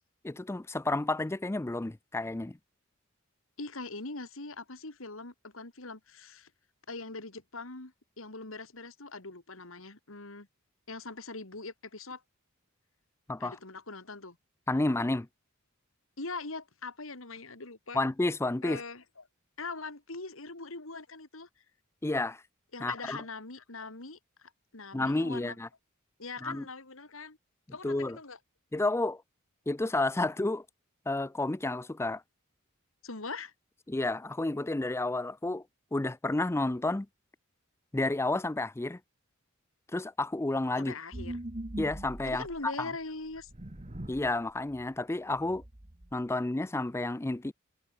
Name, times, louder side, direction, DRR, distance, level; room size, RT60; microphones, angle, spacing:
voice 1, 0.2-2.6 13.3-13.5 14.7-15.3 17.9-18.8 22.0-22.4 22.8-23.2 24.9-25.7 26.4-26.7 27.8-28.2 28.7-29.2 29.7-30.6 31.1-32.2 33.9-35.6 35.9-37.1 37.9-39.0 39.9-40.9 41.7-42.9 44.1-45.6 46.1-47.5, left 2 dB, 10° left, 0.4 m, -31 dB
voice 2, 3.6-6.5 6.9-10.5 10.9-12.2 13.4-14.4 16.2-18.0 18.6-19.0 19.6-21.5 22.7-25.6 26.2-27.4 27.7-28.4 33.0-33.5 40.8-41.4 42.2-43.5, left 3 dB, 70° left, 3.0 m, -42 dB
sound 1, 41.1-42.7 43.3-44.3 44.7-44.8 45.3-46.1, right 1 dB, 30° right, 1.6 m, -41 dB
head